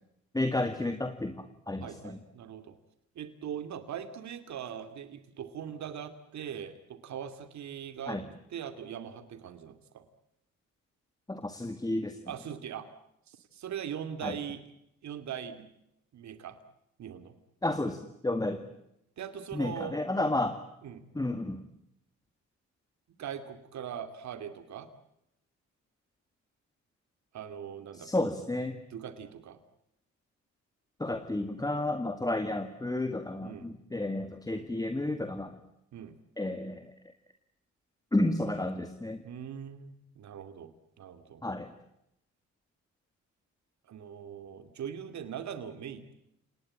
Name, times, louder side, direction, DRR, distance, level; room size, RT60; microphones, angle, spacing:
voice 1, 0.3-2.2 8.1-8.3 11.3-12.2 14.2-14.4 17.6-18.6 19.5-20.6 21.1-21.6 27.9-28.8 31.0-35.6 36.4-36.9 38.1-39.2 41.4-41.7, left 2 dB, 10° left, 8 dB, 2.0 m, -31 dB
voice 2, 1.8-2.8 3.2-8.2 8.5-10.0 12.3-12.9 13.3-14.6 15.0-15.7 16.1-16.6 17.0-17.3 19.2-20.0 20.8-21.0 23.1-24.9 27.3-28.1 28.9-29.6 33.4-33.7 34.5-34.7 35.9-36.2 39.2-40.7 41.0-41.4 43.9-46.1, right 8 dB, 65° right, 10 dB, 2.6 m, -41 dB
29.0 x 18.5 x 8.8 m, 0.82 s
cardioid pair, 90°, 30 cm